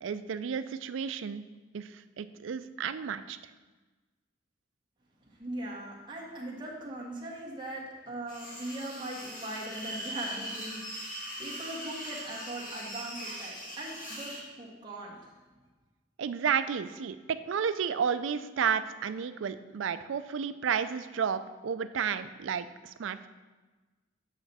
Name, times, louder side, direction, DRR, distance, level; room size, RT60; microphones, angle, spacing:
voice 1, 0.0-1.4 1.7-3.4 16.2-17.2 17.5-23.3, right 7 dB, 70° right, 12 dB, 0.4 m, -32 dB
voice 2, 5.2-10.8 11.4-15.3, right 1 dB, 20° right, -5 dB, 1.5 m, -40 dB
sound 1, 8.3-14.4, right 1 dB, 45° left, 1.7 m, -40 dB
8.0 x 5.8 x 4.1 m, 1.3 s
head